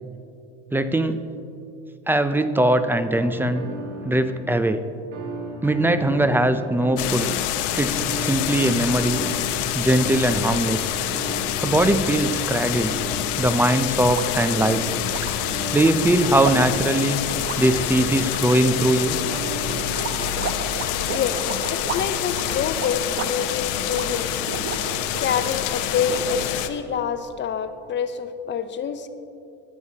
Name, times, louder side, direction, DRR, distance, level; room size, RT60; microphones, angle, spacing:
voice 1, 0.7-1.2 2.1-3.7 4.0-4.9 5.6-7.3 7.8-9.2 9.7-11.0 11.6-13.0 13.4-14.9 15.7-17.2 17.6-19.2, right 1 dB, 5° right, 11 dB, 0.3 m, -21 dB
sound 1, 3.1-4.8 5.1-7.5 7.9-18.0 19.3-21.0, right 1 dB, 50° right, 2.1 m, -36 dB
sound 2, 7.0-26.7, left 11 dB, 80° left, 0.7 m, -27 dB
sound 3, 14.0-25.6 26.0-26.8, right 5 dB, 35° right, 0.8 m, -34 dB
voice 2, 21.7-24.3 25.2-29.1, left 7 dB, 30° left, 10 dB, 0.6 m, -27 dB
19.0 x 7.9 x 2.8 m, 2.6 s
supercardioid pair, 95°, 37 cm